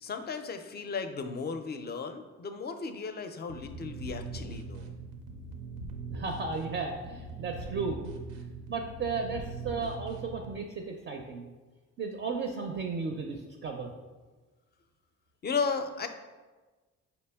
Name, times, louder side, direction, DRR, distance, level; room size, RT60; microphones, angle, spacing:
voice 1, 0.0-4.9 15.4-16.1, left 5 dB, 35° left, 8 dB, 0.4 m, -35 dB
sound 1, 3.5-10.5, right 3 dB, 85° right, 0.6 m, -41 dB
voice 2, 6.1-8.0 8.3-11.5 12.0-13.9, right 4 dB, 40° right, 3 dB, 0.4 m, -35 dB
4.2 x 2.9 x 3.4 m, 1.3 s
cardioid pair, 90°, 30 cm